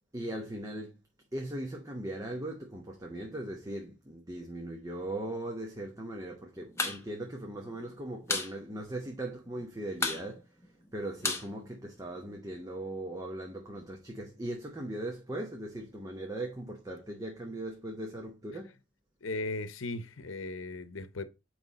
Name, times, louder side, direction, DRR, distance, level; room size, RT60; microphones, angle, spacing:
voice 1, 0.1-1.0 1.3-10.4 10.9-18.7, right 1 dB, 15° right, 0.9 m, -39 dB
sound 1, 6.6-7.0 7.3-7.4 7.7-8.5 8.8-8.9 9.2-9.6 9.9-12.3, left 3 dB, 15° left, 0.9 m, -33 dB
voice 2, 19.2-21.2, left 2 dB, 80° left, 0.8 m, -37 dB
9.4 x 3.2 x 4.1 m
head